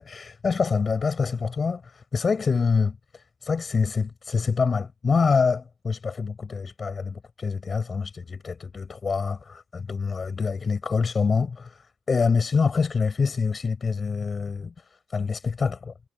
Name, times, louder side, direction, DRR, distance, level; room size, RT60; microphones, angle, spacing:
voice 1, 0.0-15.9, left 5 dB, 45° left, 6.6 m, -26 dB
cardioid pair, 75°, 0 cm